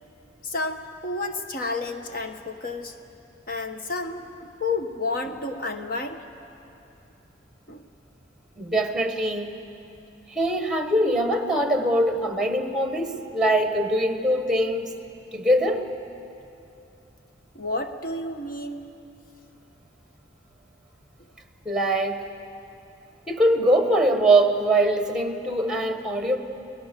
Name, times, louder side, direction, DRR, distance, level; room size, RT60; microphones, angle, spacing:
voice 1, 0.4-2.9 3.5-6.2 7.7-7.8 17.5-18.8, left 3 dB, 45° left, 5 dB, 1.4 m, -31 dB
voice 2, 8.6-9.6 10.3-15.0 15.3-15.8 21.6-22.2 23.3-26.4, right 1 dB, 5° right, 6 dB, 1.3 m, -22 dB
30.0 x 19.5 x 6.9 m, 2.8 s
head